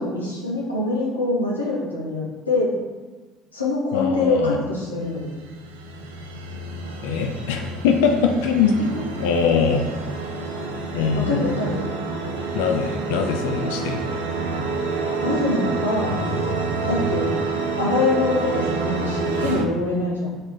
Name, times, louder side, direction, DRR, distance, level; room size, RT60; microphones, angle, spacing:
voice 1, 0.0-2.7 3.5-5.3 11.1-11.8 15.2-16.2 16.9-17.3 17.8-20.4, left 2 dB, 85° left, -4 dB, 1.0 m, -24 dB
voice 2, 3.9-4.6 7.0-8.8 9.2-9.9 10.9-11.6 12.5-14.1, left 6 dB, 65° left, 3 dB, 0.4 m, -22 dB
sound 1, 5.0-19.6, right 3 dB, 75° right, 0.5 m, -28 dB
3.8 x 3.7 x 3.6 m, 1.3 s
figure-of-eight pair, 60°, 0 cm